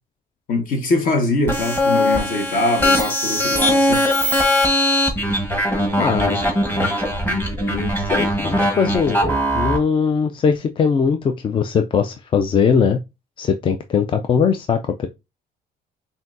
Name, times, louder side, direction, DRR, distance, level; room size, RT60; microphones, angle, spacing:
voice 1, 0.5-4.0, left 2 dB, 55° left, 1.3 m, -22 dB
sound 1, 1.5-9.8, left 1 dB, 10° left, 1.3 m, -20 dB
voice 2, 6.0-6.4 7.3-7.4 7.7-9.2 9.5-13.0 13.4-15.1, left 6 dB, 30° left, 0.4 m, -20 dB
5.7 x 2.6 x 2.6 m
cardioid pair, 110°, 17 cm